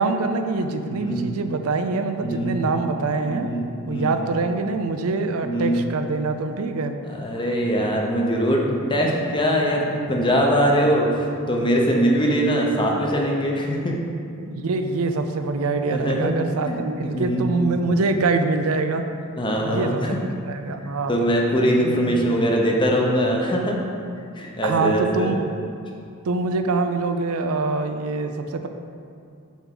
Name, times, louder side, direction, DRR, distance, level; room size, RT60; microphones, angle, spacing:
voice 1, 0.0-3.5 3.9-6.9 14.4-19.1 19.6-20.2 20.4-21.1 21.8-22.0 24.6-25.5 26.3-28.7, right 3 dB, 85° right, 7 dB, 0.5 m, -24 dB
voice 2, 0.9-1.2 2.2-2.6 3.2-4.1 5.4-5.8 7.0-13.9 15.9-16.3 16.7-17.4 19.4-20.2 21.1-23.8 24.4-25.3, equal, 25° left, -1 dB, 0.8 m, -22 dB
7.2 x 3.5 x 5.9 m, 2.4 s
head